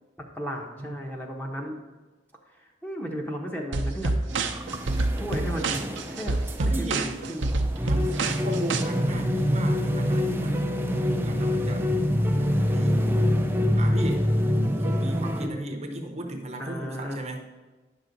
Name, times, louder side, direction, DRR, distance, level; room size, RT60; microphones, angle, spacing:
voice 1, 0.3-1.8 2.6-4.1 5.1-6.4 6.6-7.6 15.4-17.2, equal, 10° left, 0 dB, 0.9 m, -35 dB
sound 1, 3.7-8.8, right 2 dB, 80° right, 0.6 m, -27 dB
sound 2, 4.3-15.5, equal, 10° right, 0.5 m, -26 dB
voice 2, 6.6-7.1 7.8-11.9 12.7-13.2 13.7-14.3 14.5-17.4, right 1 dB, 35° right, 3 dB, 0.8 m, -35 dB
sound 3, 9.1-14.4, left 1 dB, 40° left, 0.7 m, -38 dB
9.9 x 6.2 x 3.9 m, 1.2 s
head